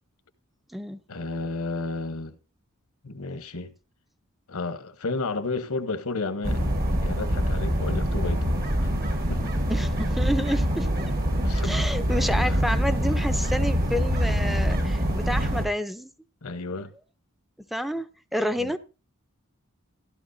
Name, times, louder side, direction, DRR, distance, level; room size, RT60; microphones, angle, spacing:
voice 1, 1.1-2.4 3.0-3.7 4.5-6.6 7.0-8.9 9.3-9.6 11.4-11.7 12.5-12.6 16.4-16.9 18.6-18.7, left 3 dB, 80° left, 1.0 m, -32 dB
sound 1, 6.4-15.7, equal, 45° right, 1.5 m, -25 dB
voice 2, 9.7-10.9 11.6-16.1 17.7-18.8, equal, ahead, 0.6 m, -29 dB
15.0 x 12.0 x 2.7 m
head